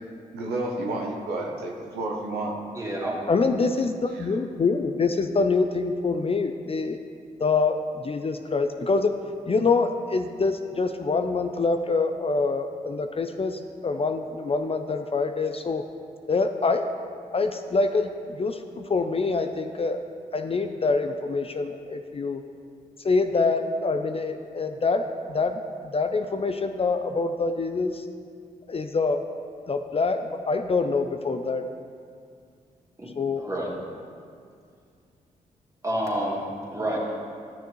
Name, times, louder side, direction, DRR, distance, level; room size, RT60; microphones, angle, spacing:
voice 1, 0.3-2.5 4.1-4.4, right 2 dB, 85° right, 0 dB, 0.9 m, -31 dB
voice 2, 2.7-3.2 33.0-33.1 33.4-33.7 35.8-36.4 36.7-37.0, right 1 dB, 20° right, -4 dB, 2.4 m, -28 dB
voice 3, 3.3-7.0 7.4-9.1 9.5-15.8 16.3-16.9 17.3-20.0 20.3-22.4 23.0-28.0 28.7-29.2 29.7-31.6 33.2-33.4, left 4 dB, 35° left, 7 dB, 0.5 m, -25 dB
12.0 x 6.8 x 3.1 m, 2.2 s
hypercardioid pair, 40°, 16 cm